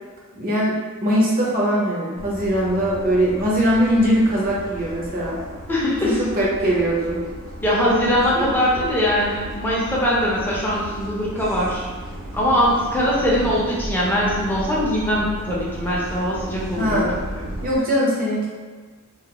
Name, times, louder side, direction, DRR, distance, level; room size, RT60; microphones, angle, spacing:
voice 1, 0.3-5.4 6.0-7.2 8.3-8.4 16.8-17.1 17.6-18.5, equal, 45° right, -5 dB, 0.6 m, -21 dB
sound 1, 2.1-17.8, right 1 dB, 85° right, 0.6 m, -35 dB
voice 2, 5.7-6.2 7.6-11.9 12.3-17.0 17.3-17.5, equal, 10° left, -6 dB, 0.5 m, -21 dB
2.4 x 2.4 x 2.8 m, 1.5 s
head